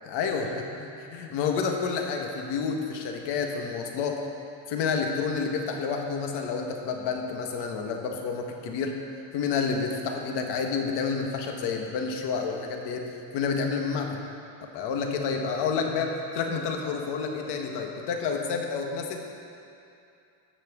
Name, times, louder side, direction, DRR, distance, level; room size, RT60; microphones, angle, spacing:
voice 1, 0.1-0.5 0.8-4.2 4.7-9.0 9.3-13.1 13.3-14.2 14.6-19.2, left 5 dB, 75° left, 2 dB, 1.5 m, -29 dB
13.5 x 5.9 x 7.2 m, 2.6 s
cardioid pair, 120°, 41 cm